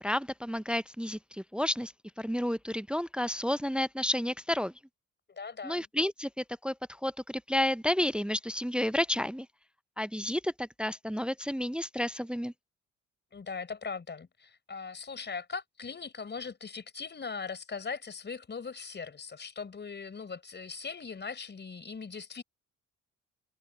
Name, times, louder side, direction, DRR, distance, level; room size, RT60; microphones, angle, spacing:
voice 1, 0.0-4.7 5.6-6.7 7.0-9.5 10.0-12.5, left 1 dB, 5° right, 0.4 m, -31 dB
voice 2, 5.3-5.8 13.3-22.4, left 5 dB, 35° left, 5.5 m, -40 dB
cardioid pair, 90°, 30 cm